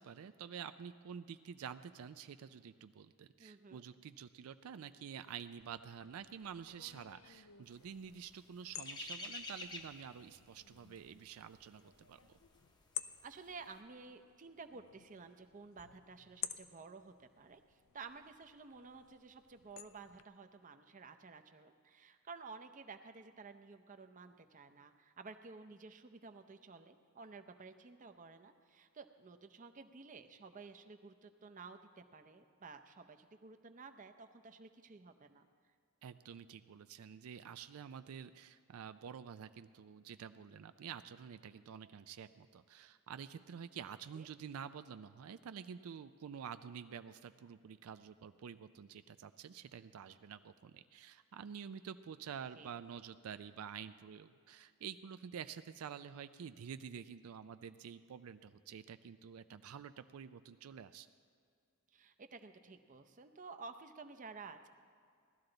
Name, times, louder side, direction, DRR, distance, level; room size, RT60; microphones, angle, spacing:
voice 1, 0.0-12.4 36.0-61.1, right 7 dB, 85° right, 11 dB, 0.4 m, -49 dB
voice 2, 3.4-3.8 13.2-35.5 44.1-44.3 52.5-52.7 61.9-64.7, right 4 dB, 35° right, 8 dB, 0.6 m, -53 dB
sound 1, 5.6-20.2, left 12 dB, 75° left, 0.5 m, -53 dB
sound 2, 7.9-13.0 13.2-13.5, left 2 dB, 20° left, 0.8 m, -48 dB
17.0 x 12.5 x 3.9 m, 2.2 s
head